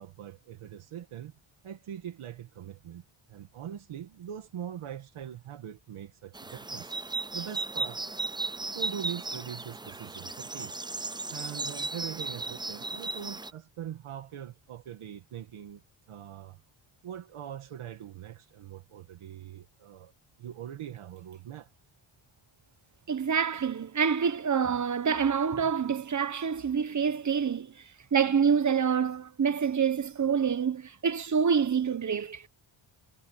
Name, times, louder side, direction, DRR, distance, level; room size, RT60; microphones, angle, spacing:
voice 1, 0.0-1.3 1.6-3.0 3.3-7.0 7.3-8.0 8.6-10.8 11.3-15.8 16.1-16.6 17.0-20.1 20.4-21.7, right 10 dB, 85° right, 2.1 m, -42 dB
sound 1, 6.3-13.5, right 3 dB, 10° right, 0.5 m, -36 dB
voice 2, 23.1-27.8 28.1-32.5, right 6 dB, 35° right, 1.3 m, -27 dB
cardioid pair, 110°, 49 cm